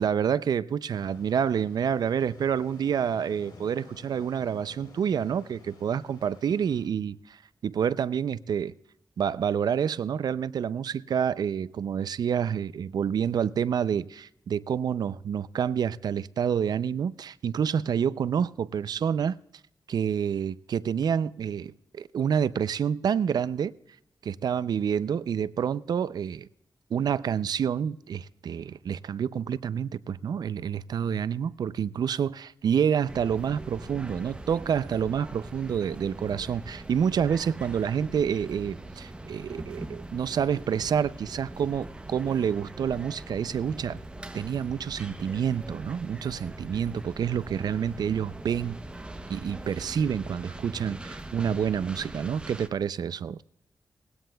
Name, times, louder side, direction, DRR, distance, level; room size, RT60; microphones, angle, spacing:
voice 1, 0.0-8.7 9.2-19.4 19.9-23.7 24.2-26.5 26.9-44.0 44.3-48.8 49.3-53.4, right 8 dB, 70° right, 0.4 m, -28 dB
sound 1, 0.9-6.9, left 3 dB, 85° left, 3.5 m, -51 dB
sound 2, 33.1-52.7, right 2 dB, 15° right, 0.7 m, -42 dB
20.0 x 16.5 x 2.3 m
wide cardioid pair, 150°, 7 cm